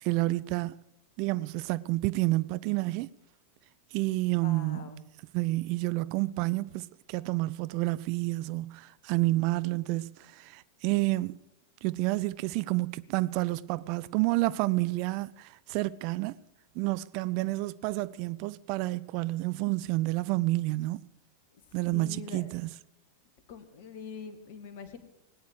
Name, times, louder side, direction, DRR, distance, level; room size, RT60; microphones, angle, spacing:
voice 1, 0.0-0.7 1.2-3.1 3.9-5.0 5.3-11.4 11.8-16.4 16.8-21.1 21.7-22.7, right 20 dB, 45° right, 0.4 m, -29 dB
voice 2, 4.4-5.0 21.9-22.5 23.5-25.0, left 6 dB, 50° left, 2.0 m, -43 dB
19.0 x 9.3 x 6.5 m
figure-of-eight pair, 90°, 0 cm